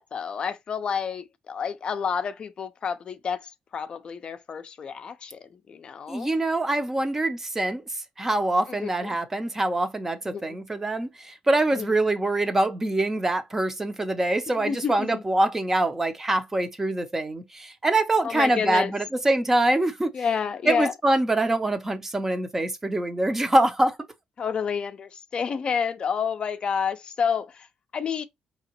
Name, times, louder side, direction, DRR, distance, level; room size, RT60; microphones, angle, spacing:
voice 1, 0.0-6.4 8.7-9.1 10.3-10.6 11.7-11.9 14.5-15.2 18.2-18.9 20.1-20.9 24.4-27.7 27.9-28.2, left 6 dB, 45° left, 0.4 m, -29 dB
voice 2, 6.1-7.8 8.2-20.1 20.7-24.0, right 2 dB, 15° right, 0.7 m, -24 dB
4.8 x 2.9 x 2.9 m
cardioid pair, 110°, 2 cm